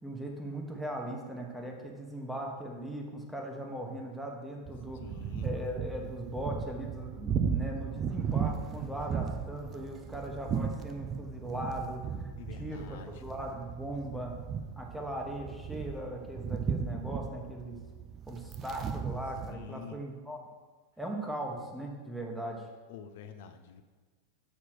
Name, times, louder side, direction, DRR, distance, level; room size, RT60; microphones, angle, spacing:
voice 1, 0.0-14.3 14.7-17.8 18.3-20.4 21.0-22.6, right 1 dB, 5° right, 0 dB, 1.2 m, -39 dB
sound 1, 4.7-19.5, right 7 dB, 30° right, 0.5 m, -36 dB
voice 2, 5.0-5.5 12.4-13.1 19.5-20.0 22.9-23.8, left 7 dB, 65° left, 8 dB, 0.6 m, -47 dB
6.6 x 4.9 x 6.1 m, 1.4 s
supercardioid pair, 150°, 0 cm